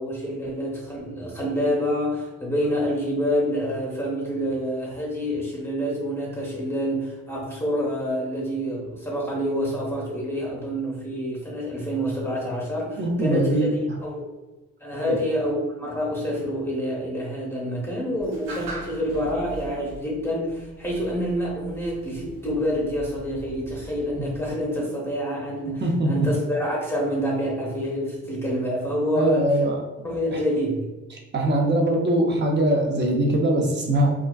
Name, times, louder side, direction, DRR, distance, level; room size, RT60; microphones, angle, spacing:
voice 1, 0.0-13.7 14.0-14.2 14.8-29.5 30.0-30.9, equal, 5° left, -4 dB, 1.0 m, -27 dB
voice 2, 13.0-13.8 15.1-15.2 25.8-26.3 29.1-29.8 30.3-30.4 31.3-34.1, right 1 dB, 35° right, 0 dB, 0.7 m, -22 dB
sound 1, 18.2-24.5, right 2 dB, 75° right, 0.8 m, -41 dB
2.4 x 2.2 x 2.3 m, 1.1 s
supercardioid pair, 65°, 33 cm